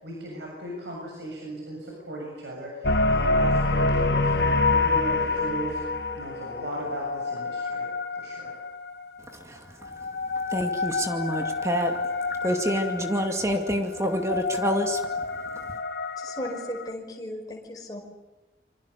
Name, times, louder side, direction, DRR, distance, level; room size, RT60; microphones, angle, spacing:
voice 1, 0.0-5.8 6.1-7.9 8.2-8.5, right 1 dB, 70° right, -1 dB, 7.2 m, -37 dB
sound 1, 2.8-9.0 9.8-16.9, left 3 dB, 65° left, 2.0 m, -27 dB
voice 2, 10.5-11.9 12.4-15.0, equal, 15° right, 4 dB, 2.4 m, -27 dB
voice 3, 16.2-18.0, equal, 20° left, 0 dB, 5.2 m, -36 dB
27.5 x 25.5 x 6.8 m, 1.1 s
head